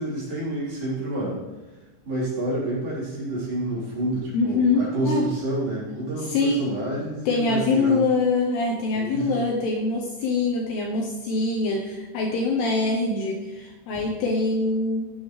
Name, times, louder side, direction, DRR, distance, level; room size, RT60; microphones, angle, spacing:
voice 1, 0.0-1.4 2.1-8.0 8.9-9.4, right 1 dB, 50° right, -7 dB, 5.3 m, -29 dB
voice 2, 4.3-5.2 6.3-6.6 7.3-15.2, left 3 dB, 70° left, 0 dB, 2.7 m, -24 dB
16.0 x 9.7 x 3.2 m, 1.1 s
omnidirectional pair, 5.7 m